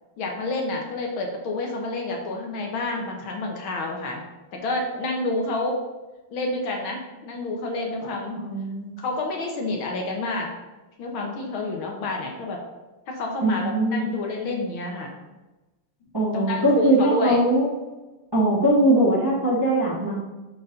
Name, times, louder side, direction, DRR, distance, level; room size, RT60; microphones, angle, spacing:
voice 1, 0.2-4.2 4.5-5.8 6.3-8.4 9.0-10.5 11.0-12.6 13.1-15.1 16.3-17.4, left 2 dB, 70° left, 1 dB, 1.8 m, -29 dB
voice 2, 8.4-8.9 13.4-14.1 16.1-17.7 18.3-20.1, right 1 dB, 15° right, -6 dB, 1.1 m, -21 dB
6.9 x 4.6 x 3.8 m, 1.1 s
omnidirectional pair, 2.4 m